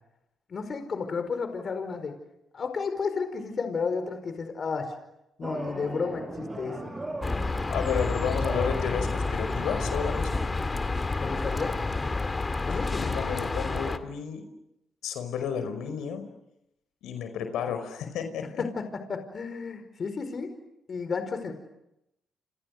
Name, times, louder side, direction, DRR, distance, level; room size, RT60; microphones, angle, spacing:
voice 1, 0.5-2.1 2.5-5.0 5.4-6.9 11.2-11.7 12.6-13.1 18.6-18.8 19.1-20.5 20.9-21.5, left 5 dB, 45° left, 8 dB, 4.8 m, -32 dB
sound 1, 5.4-12.1, right 2 dB, 20° right, 6.7 m, -39 dB
sound 2, 7.2-14.0, left 3 dB, 25° left, 2.2 m, -29 dB
voice 2, 7.7-10.4 13.0-14.5 15.0-16.2 17.0-18.6, left 7 dB, 85° left, 8 dB, 5.2 m, -32 dB
29.5 x 28.0 x 6.7 m, 0.86 s
cardioid pair, 90°, 0 cm